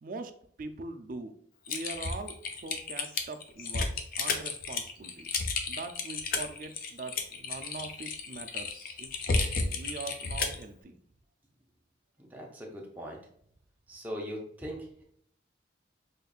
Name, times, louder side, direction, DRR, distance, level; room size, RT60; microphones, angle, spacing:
voice 1, 0.0-0.3 0.6-1.4 1.7-3.9 4.2-9.1 9.7-10.9, right 3 dB, 45° right, 8 dB, 0.3 m, -42 dB
Typing, 1.7-10.6, left 4 dB, 50° left, 0.4 m, -32 dB
voice 2, 12.2-13.2 13.9-15.0, equal, 10° right, -1 dB, 0.6 m, -40 dB
5.0 x 2.4 x 2.3 m, 0.65 s
head